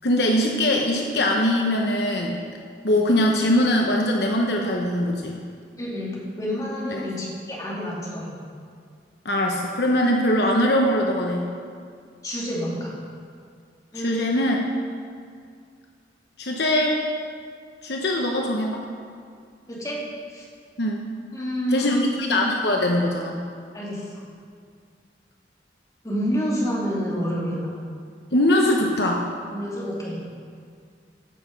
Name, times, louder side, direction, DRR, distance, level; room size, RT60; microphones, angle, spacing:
voice 1, 0.0-2.4 2.8-5.4 6.9-7.0 9.2-11.5 13.9-14.6 16.4-17.0 17.8-18.9 20.8-21.0 21.7-23.4 28.3-29.2, left 1 dB, 70° left, 0 dB, 1.0 m, -22 dB
voice 2, 5.8-8.3 12.2-12.9 13.9-14.4 14.7-14.8 19.7-20.0 20.3-20.4 21.3-22.1 23.7-24.2 26.0-27.7 29.5-30.2, equal, 20° left, -6 dB, 2.7 m, -28 dB
15.0 x 6.8 x 5.2 m, 2.2 s
head